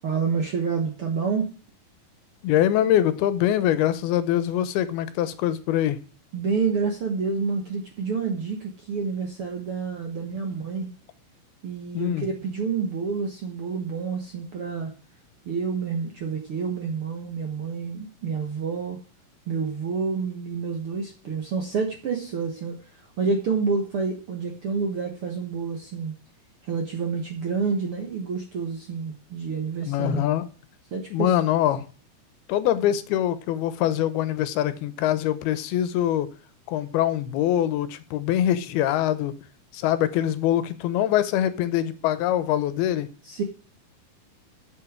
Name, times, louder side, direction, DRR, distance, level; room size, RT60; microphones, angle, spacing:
voice 1, 0.0-1.5 6.3-10.9 11.6-14.9 15.4-19.0 19.5-26.1 26.6-30.2 30.9-31.6 43.2-43.4, right 5 dB, 60° right, 2 dB, 1.5 m, -28 dB
voice 2, 2.4-6.0 11.9-12.3 29.8-30.5 31.1-31.8 32.5-36.3 36.7-39.3 39.7-43.1, left 11 dB, 85° left, 13 dB, 2.8 m, -23 dB
10.0 x 7.9 x 5.0 m, 0.38 s
omnidirectional pair, 4.4 m